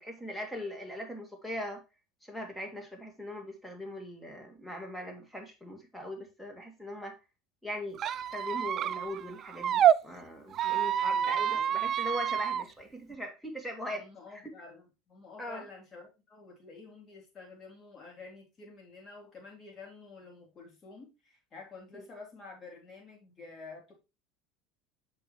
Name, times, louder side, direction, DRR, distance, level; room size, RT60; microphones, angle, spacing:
voice 1, 0.0-1.8 2.2-7.2 7.6-8.0 8.3-14.0 14.3-14.4 15.4-15.7 21.9-22.0, left 1 dB, 10° left, 3 dB, 2.5 m, -40 dB
Squeak, 8.0-10.0 10.5-12.6, right 9 dB, 45° right, 0.3 m, -28 dB
voice 2, 11.0-11.7 13.0-13.2 13.9-23.9, left 3 dB, 35° left, -1 dB, 3.6 m, -50 dB
6.8 x 5.3 x 3.2 m, 0.27 s
hypercardioid pair, 80°, 0 cm